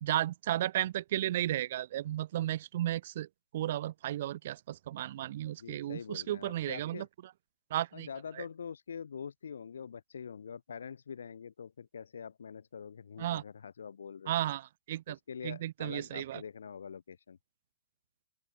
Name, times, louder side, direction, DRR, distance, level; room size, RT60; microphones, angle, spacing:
voice 1, 0.0-3.3 3.5-7.1 7.7-8.1 8.4-8.5 13.2-13.4 14.3-15.2 15.4-16.4, right 13 dB, 50° right, 1.1 m, -34 dB
voice 2, 5.6-7.1 7.9-14.3 15.1-17.4, left 7 dB, 90° left, 1.7 m, -45 dB
open air
hypercardioid pair, 155°, 0 cm